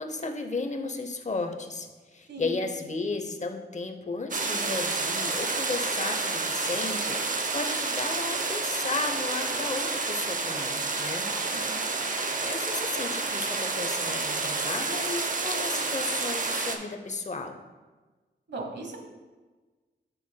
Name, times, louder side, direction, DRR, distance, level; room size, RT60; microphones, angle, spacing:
voice 1, 0.0-11.3 12.4-17.6, left 3 dB, 35° left, 6 dB, 0.7 m, -34 dB
voice 2, 2.3-2.7 11.2-11.7 18.5-19.0, right 2 dB, 60° right, 3 dB, 1.1 m, -38 dB
sound 1, 4.3-16.8, right 3 dB, 40° right, 0.7 m, -29 dB
9.0 x 5.6 x 2.2 m, 1.3 s
cardioid pair, 70°, 20 cm